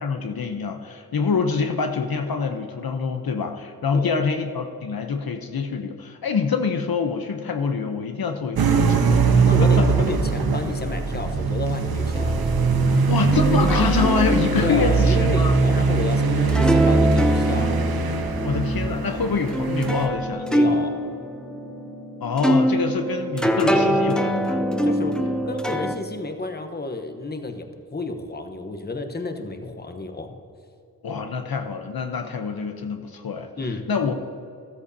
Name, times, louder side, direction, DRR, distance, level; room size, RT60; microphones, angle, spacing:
voice 1, 0.0-9.9 13.1-15.6 18.4-20.5 22.2-24.6 31.0-33.5 33.9-34.2, left 5 dB, 75° left, 5 dB, 0.8 m, -26 dB
sound 1, 8.6-20.1, right 4 dB, 85° right, 1.0 m, -21 dB
voice 2, 9.4-12.4 14.6-17.8 20.5-21.0 24.8-30.3 33.6-33.9, left 3 dB, 25° left, 6 dB, 1.0 m, -31 dB
sound 2, 12.1-26.0, right 1 dB, ahead, 0.6 m, -25 dB
13.5 x 13.5 x 2.8 m, 2.6 s
wide cardioid pair, 65°, 36 cm